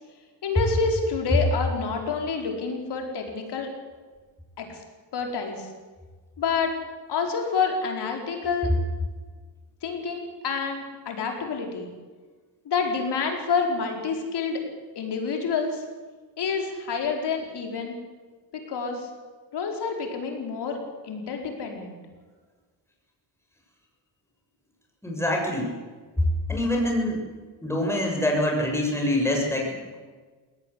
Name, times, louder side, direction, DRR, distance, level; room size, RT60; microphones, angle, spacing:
voice 1, 0.4-3.7 4.6-4.8 5.1-5.7 6.4-6.7 7.1-8.8 9.8-11.9 12.6-14.6 14.9-15.8 16.4-18.0 18.7-19.1 19.5-22.0, left 5 dB, 60° left, 2 dB, 5.0 m, -28 dB
voice 2, 25.0-25.8 26.5-27.2 27.6-30.0, left 1 dB, 5° left, 0 dB, 7.1 m, -25 dB
20.0 x 18.0 x 8.5 m, 1.4 s
cardioid pair, 90°, 44 cm